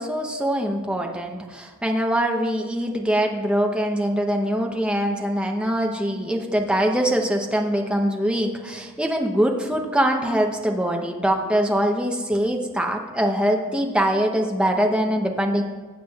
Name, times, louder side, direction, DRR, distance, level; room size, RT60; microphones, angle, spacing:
voice 1, 0.0-15.6, equal, 5° right, 2 dB, 0.8 m, -23 dB
19.0 x 8.0 x 2.4 m, 1.4 s
head